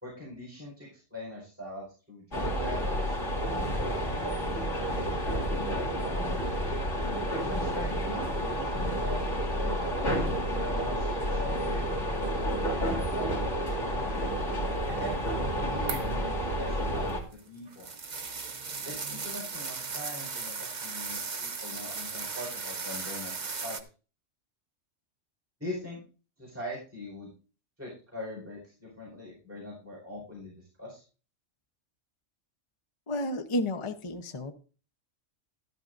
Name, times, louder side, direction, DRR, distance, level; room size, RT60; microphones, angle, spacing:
voice 1, 0.0-3.1 3.8-4.6 4.9-6.4 7.3-10.0 10.6-13.3 13.8-14.1 15.0-15.1 15.6-17.9 18.8-23.3 23.6-23.8 25.6-26.0 26.4-27.3 27.8-31.0, left 1 dB, 10° right, -4 dB, 4.6 m, -42 dB
sound 1, 2.3-17.2, equal, 70° left, 2.7 m, -30 dB
sound 2, 15.9-16.2 17.1-23.8, right 4 dB, 40° right, 1.0 m, -37 dB
voice 2, 33.1-34.5, left 1 dB, 25° left, 5 dB, 0.9 m, -31 dB
13.5 x 12.0 x 2.6 m, 0.36 s
omnidirectional pair, 1.3 m